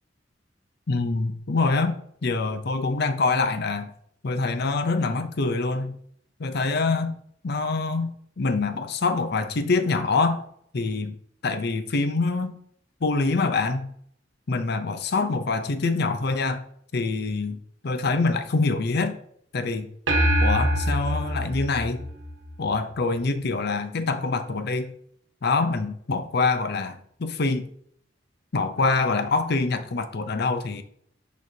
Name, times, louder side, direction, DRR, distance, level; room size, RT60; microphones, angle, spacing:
voice 1, 0.9-3.9 4.2-6.0 6.4-7.2 7.4-10.4 10.7-11.1 11.4-12.6 13.0-13.9 14.5-16.6 16.9-19.2 19.5-19.9 20.4-22.1 22.6-24.9 25.4-27.7 28.5-30.8, left 3 dB, 60° left, 10 dB, 0.6 m, -25 dB
sound 1, 20.1-22.7, equal, 70° right, 1.1 m, -24 dB
6.3 x 5.3 x 2.8 m, 0.66 s
head